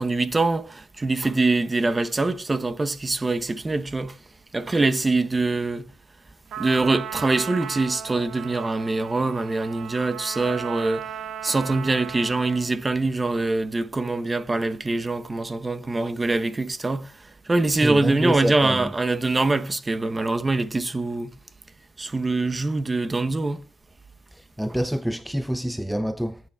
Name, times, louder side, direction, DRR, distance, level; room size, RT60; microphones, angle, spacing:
voice 1, 0.0-4.2 4.5-5.9 6.6-11.1 11.4-17.1 17.5-21.3 22.0-23.6, right 2 dB, 20° right, 0.8 m, -24 dB
Trumpet, 6.5-12.7, right 9 dB, 80° right, 1.7 m, -36 dB
voice 2, 17.7-18.9 24.3-26.4, equal, 5° right, 0.5 m, -27 dB
17.5 x 9.1 x 2.3 m
cardioid pair, 90°, 0 cm